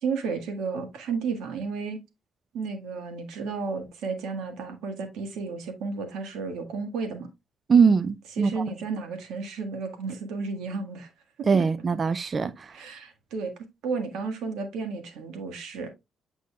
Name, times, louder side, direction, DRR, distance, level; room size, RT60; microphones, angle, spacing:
voice 1, 0.0-2.0 2.5-7.3 8.3-11.1 12.7-13.5 13.8-15.9, right 4 dB, 85° right, 1.5 m, -32 dB
voice 2, 7.7-8.6 11.5-12.7, right 5 dB, 40° right, 0.5 m, -22 dB
8.2 x 5.3 x 2.3 m
cardioid pair, 90°, 0 cm